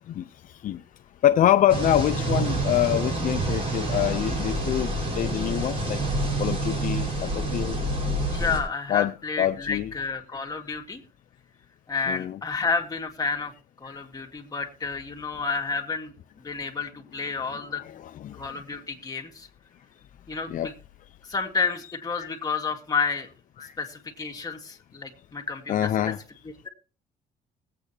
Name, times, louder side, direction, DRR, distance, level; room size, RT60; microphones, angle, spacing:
voice 1, 0.1-0.8 1.2-6.0 6.4-7.8 8.9-9.9 12.1-12.4 13.8-14.0 18.2-18.4 20.5-20.7 22.2-22.3 23.6-23.8 25.7-26.2, left 11 dB, 55° left, 0.5 m, -25 dB
sound 1, 1.7-8.6, right 2 dB, 35° right, 5.1 m, -27 dB
voice 2, 8.3-11.0 11.9-13.5 13.8-16.1 16.4-17.8 18.3-19.5 20.3-20.7 21.2-23.3 23.6-26.1, left 4 dB, 25° left, 2.1 m, -30 dB
21.0 x 8.4 x 2.8 m
cardioid pair, 130°, 16 cm